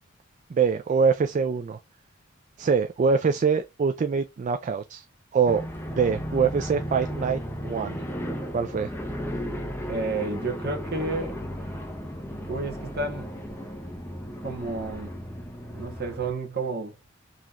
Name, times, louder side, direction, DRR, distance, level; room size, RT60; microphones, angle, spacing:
voice 1, 0.5-1.8 2.6-5.0 5.3-8.0 8.5-8.9, right 5 dB, 35° right, 0.3 m, -24 dB
sound 1, 5.5-16.3, equal, 10° left, 0.7 m, -35 dB
voice 2, 9.9-11.7 12.5-13.3 14.4-15.1 15.7-17.0, right 3 dB, 50° right, 1.1 m, -31 dB
3.9 x 2.9 x 2.5 m
head